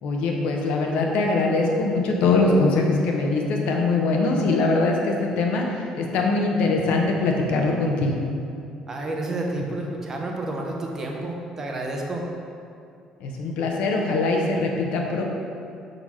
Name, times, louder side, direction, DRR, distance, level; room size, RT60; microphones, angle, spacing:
voice 1, 0.0-5.6 6.0-8.2 9.6-9.7 13.2-15.2, left 3 dB, 75° left, 1 dB, 0.9 m, -22 dB
voice 2, 8.9-12.2, right 2 dB, 25° right, 0 dB, 0.8 m, -30 dB
5.8 x 3.9 x 4.8 m, 2.5 s
cardioid pair, 145°, 2 cm